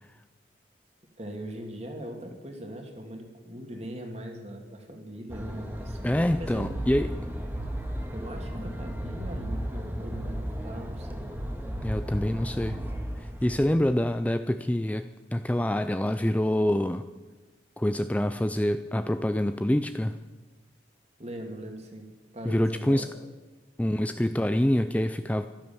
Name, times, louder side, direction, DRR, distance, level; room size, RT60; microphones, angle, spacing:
voice 1, 1.2-6.7 8.1-11.3 21.2-23.1, right 1 dB, 35° right, 3 dB, 2.6 m, -40 dB
sound 1, 5.3-13.8, equal, 10° right, 1.8 m, -35 dB
voice 2, 6.0-7.1 11.8-12.8 13.4-17.0 17.8-20.2 22.4-23.1 23.8-25.5, left 1 dB, 10° left, 10 dB, 0.4 m, -26 dB
15.5 x 12.5 x 7.1 m, 1.3 s
head